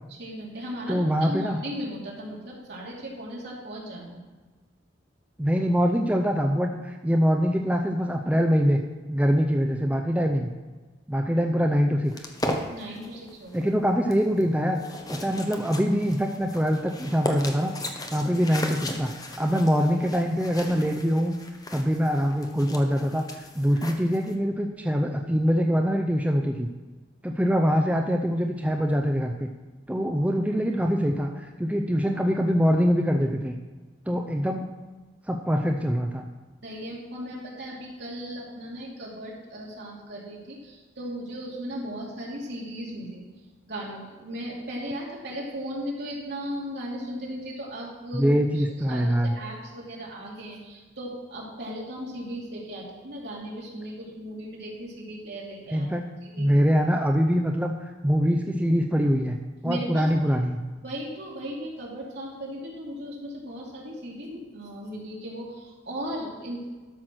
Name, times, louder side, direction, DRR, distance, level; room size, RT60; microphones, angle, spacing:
voice 1, 0.2-4.2 12.7-13.7 36.6-43.2 43.7-48.3 48.5-55.9 56.2-56.5 59.6-60.1 60.8-66.7, equal, 60° right, -4 dB, 3.1 m, -37 dB
voice 2, 0.9-1.6 5.4-8.8 9.1-10.5 11.1-12.2 13.5-14.8 15.1-17.7 18.1-19.1 19.4-21.3 21.7-23.2 23.6-26.7 27.2-29.5 29.9-33.5 34.1-34.6 35.3-36.2 48.1-49.4 55.7-56.0 56.4-57.7 58.0-60.6, equal, 10° right, 3 dB, 0.5 m, -24 dB
sound 1, 12.1-24.3, left 1 dB, 20° left, 0.9 m, -37 dB
12.5 x 6.0 x 6.2 m, 1.3 s
head